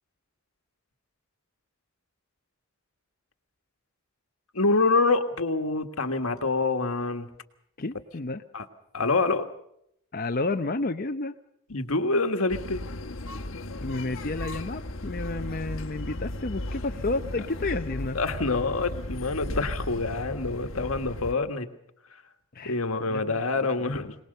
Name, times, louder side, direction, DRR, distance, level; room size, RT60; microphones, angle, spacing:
voice 1, 4.5-7.3 8.5-8.7 8.9-9.5 11.7-12.8 18.1-21.7 22.6-24.2, left 3 dB, 90° left, 7 dB, 1.6 m, -26 dB
voice 2, 7.8-8.4 10.1-11.3 13.8-18.2 22.5-23.2 23.8-23.9, left 2 dB, 45° left, 6 dB, 0.7 m, -31 dB
sound 1, 12.5-21.3, left 1 dB, 65° left, 1.3 m, -35 dB
23.5 x 19.5 x 6.7 m, 0.75 s
head